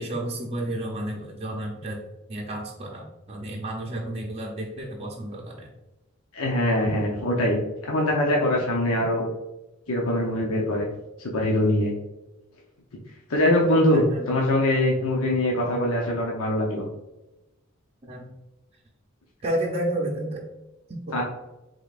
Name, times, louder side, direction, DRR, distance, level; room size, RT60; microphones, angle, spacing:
voice 1, 0.0-2.0 2.3-5.7 13.6-14.4 18.1-18.3 19.4-20.4 20.9-21.2, right 1 dB, 30° right, -2 dB, 0.6 m, -31 dB
voice 2, 6.3-9.2 9.9-10.9 11.2-11.9 13.3-16.8 21.1-21.2, left 1 dB, 85° left, -2 dB, 0.8 m, -23 dB
5.1 x 3.8 x 2.4 m, 0.98 s
head